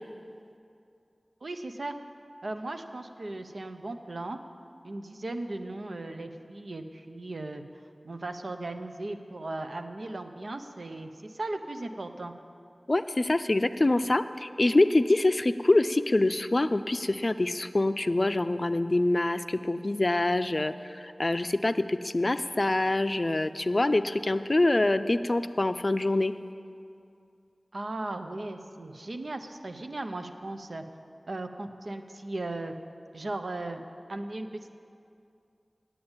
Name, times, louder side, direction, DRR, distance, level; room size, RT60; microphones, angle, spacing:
voice 1, 1.4-1.9 2.4-4.4 4.8-7.6 8.0-12.3 27.7-30.8 31.3-32.7 33.1-33.8 34.1-34.7, right 2 dB, 80° right, 6 dB, 0.7 m, -37 dB
voice 2, 12.9-26.3, left 2 dB, 45° left, 11 dB, 0.4 m, -25 dB
8.7 x 8.5 x 8.9 m, 2.5 s
wide cardioid pair, 50°, 0 cm